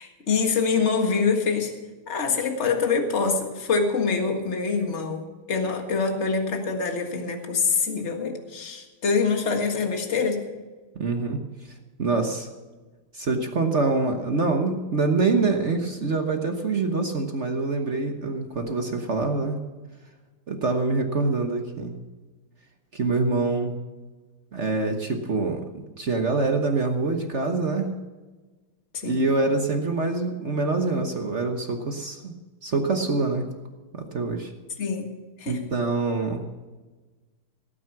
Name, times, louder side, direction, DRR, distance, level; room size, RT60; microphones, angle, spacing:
voice 1, 0.0-1.7 2.1-10.4 28.9-29.2 34.8-35.1 35.4-35.6, left 5 dB, 35° left, 4 dB, 1.8 m, -25 dB
voice 2, 10.9-11.4 12.0-12.5 13.1-19.6 20.5-22.0 22.9-23.7 24.5-25.7 26.0-27.9 29.0-32.3 32.6-33.5 33.9-34.5 35.5-36.5, right 3 dB, 40° right, 4 dB, 1.1 m, -25 dB
17.5 x 9.4 x 6.0 m, 1.3 s
omnidirectional pair, 2.4 m